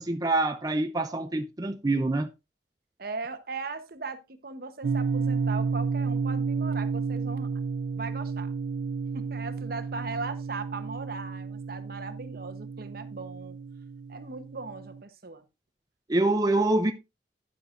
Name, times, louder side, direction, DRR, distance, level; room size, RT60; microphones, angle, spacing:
voice 1, 0.0-2.3 16.1-16.9, right 2 dB, 20° right, 0.5 m, -25 dB
voice 2, 3.0-7.5 8.0-8.5 9.1-13.6 14.1-15.4, right 4 dB, 55° right, 1.0 m, -38 dB
sound 1, 4.8-15.0, right 5 dB, 80° right, 0.4 m, -31 dB
9.8 x 9.4 x 2.5 m
head